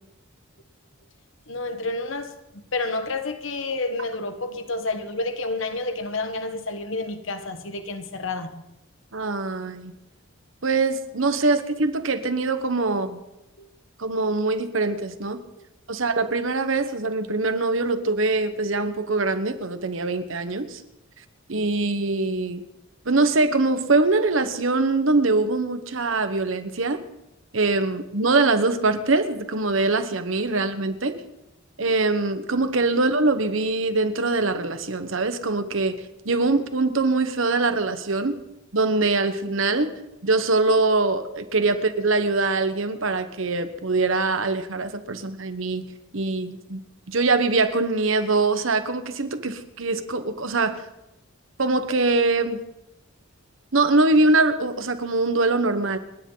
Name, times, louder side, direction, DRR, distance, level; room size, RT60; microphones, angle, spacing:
voice 1, 1.5-8.6 13.6-13.7 15.6-15.7, left 3 dB, 70° left, 1.3 m, -30 dB
voice 2, 9.1-9.9 10.6-13.2 14.0-15.4 15.9-20.8 21.5-22.6 23.0-27.0 27.5-31.2 31.8-38.4 38.7-39.9 40.2-45.9 46.1-46.8 47.1-50.8 51.6-52.6 53.7-56.0, right 3 dB, 80° right, 1.2 m, -23 dB
29.5 x 10.0 x 4.0 m
head